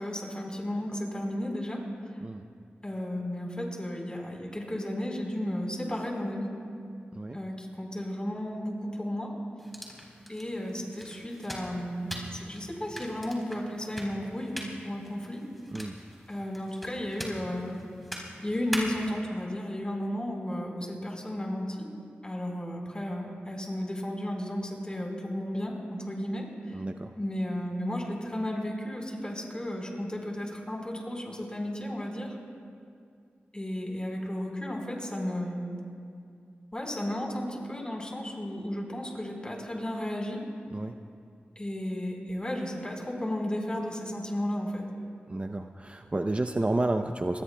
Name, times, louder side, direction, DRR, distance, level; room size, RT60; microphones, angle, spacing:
voice 1, 0.0-1.8 2.8-6.5 7.3-9.3 10.3-14.6 14.8-15.4 16.3-17.8 18.4-21.9 22.2-26.8 27.2-32.4 33.5-35.6 36.7-40.4 41.6-44.9, left 1 dB, 25° left, 0 dB, 4.1 m, -33 dB
sound 1, 9.6-19.2, equal, 5° left, 3.8 m, -42 dB
voice 2, 26.7-27.1 40.7-41.0 45.3-47.4, right 2 dB, 30° right, 6 dB, 0.6 m, -30 dB
27.0 x 20.0 x 2.2 m, 2.3 s
cardioid pair, 50°, 4 cm